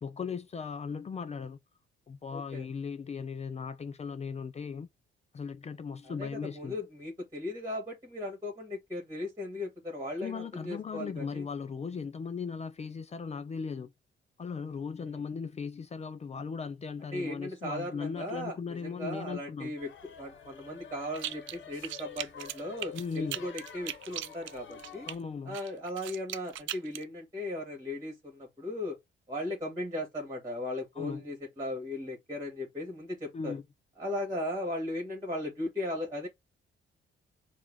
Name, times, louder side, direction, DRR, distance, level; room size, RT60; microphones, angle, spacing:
voice 1, 0.0-1.6 2.1-4.9 5.3-6.8 10.2-13.9 14.4-19.7 22.9-23.4 25.1-25.6 31.0-31.2 33.3-33.6, left 5 dB, 35° left, 0.5 m, -37 dB
voice 2, 2.3-2.7 6.0-11.5 15.0-15.2 17.1-25.1 25.5-29.0 29.3-33.5 34.0-36.3, left 1 dB, 20° right, 2.3 m, -37 dB
sound 1, 19.8-25.2, left 7 dB, 70° left, 1.1 m, -49 dB
sound 2, 21.1-21.6 21.8-25.1 25.5-27.0, right 13 dB, 75° right, 0.5 m, -38 dB
4.5 x 2.6 x 3.6 m
cardioid pair, 90°, 20 cm